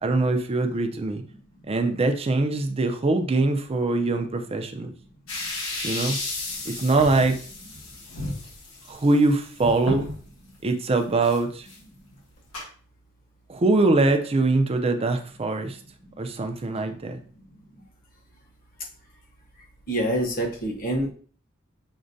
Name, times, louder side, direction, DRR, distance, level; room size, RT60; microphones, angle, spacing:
voice 1, 0.0-1.2 1.7-4.9 5.8-6.2 6.7-7.4 8.9-10.1 10.6-11.7 13.5-15.8 16.2-17.2, right 2 dB, 30° right, 6 dB, 0.4 m, -23 dB
sound 1, 5.3-10.3 10.7-10.8 11.2-11.4 11.7-11.8 12.5-12.6, left 2 dB, 70° left, 1.3 m, -33 dB
voice 2, 19.9-21.1, right 1 dB, 45° left, 0 dB, 1.1 m, -26 dB
6.1 x 2.2 x 2.6 m, 0.43 s
head